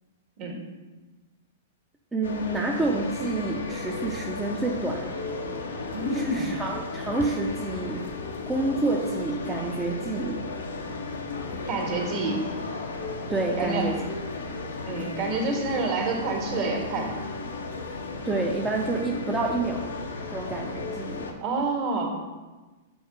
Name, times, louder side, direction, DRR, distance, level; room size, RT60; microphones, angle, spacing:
voice 1, 2.1-5.1 6.1-8.0 8.5-10.4 13.3-14.0 18.2-19.9 20.3-21.3, right 2 dB, 10° right, -2 dB, 0.6 m, -28 dB
sound 1, 2.2-21.3, left 3 dB, 80° left, 0.7 m, -35 dB
voice 2, 5.9-6.6 11.7-12.5 13.6-13.9 14.8-17.1 21.4-22.1, right 3 dB, 50° right, 0 dB, 1.6 m, -28 dB
7.0 x 4.6 x 3.3 m, 1.2 s
hypercardioid pair, 110°, 0 cm